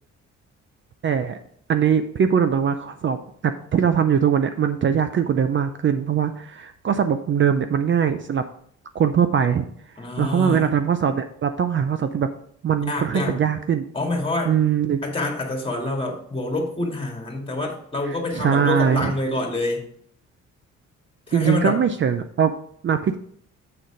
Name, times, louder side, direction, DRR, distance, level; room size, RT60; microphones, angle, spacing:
voice 1, 1.0-1.4 1.7-3.2 3.4-8.4 8.9-9.7 10.2-12.3 12.6-13.9 14.5-15.0 18.1-19.1 21.3-22.5 22.8-23.2, right 8 dB, 40° right, 9 dB, 0.5 m, -21 dB
voice 2, 10.0-10.7 12.9-13.4 13.9-14.5 15.0-19.8 21.3-21.8, left 2 dB, 20° left, 2 dB, 2.0 m, -26 dB
7.7 x 4.0 x 5.0 m, 0.63 s
cardioid pair, 90°, 30 cm